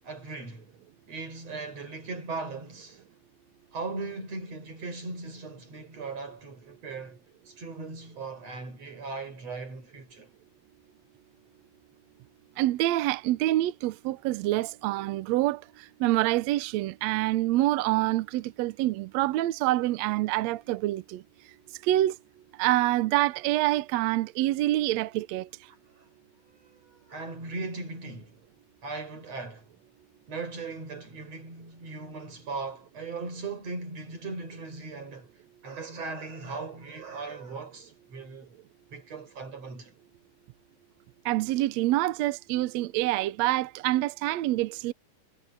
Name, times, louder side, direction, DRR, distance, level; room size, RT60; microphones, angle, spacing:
voice 1, 0.0-0.7 1.1-3.0 3.7-7.2 7.5-10.3 25.9-26.1 26.6-28.4 28.8-29.7 30.3-35.3 35.6-38.5 38.9-39.9, right 3 dB, 55° right, 6.6 m, -38 dB
voice 2, 12.6-15.6 16.0-21.2 21.8-22.2 22.6-25.5 41.3-44.9, right 16 dB, 75° right, 1.7 m, -26 dB
omnidirectional pair, 3.6 m